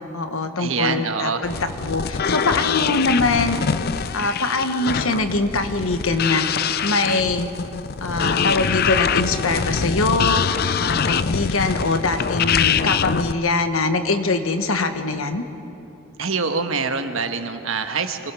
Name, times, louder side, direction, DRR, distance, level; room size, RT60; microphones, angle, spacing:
voice 1, 0.0-3.6 4.1-6.5 6.8-7.5 8.0-10.5 10.8-15.4, left 3 dB, 80° left, 8 dB, 1.3 m, -23 dB
voice 2, 0.6-1.5 16.2-18.3, right 4 dB, 75° right, 7 dB, 1.3 m, -25 dB
sound 1, 1.4-13.3, left 6 dB, 45° left, 0.5 m, -24 dB
25.0 x 19.5 x 6.3 m, 2.8 s
head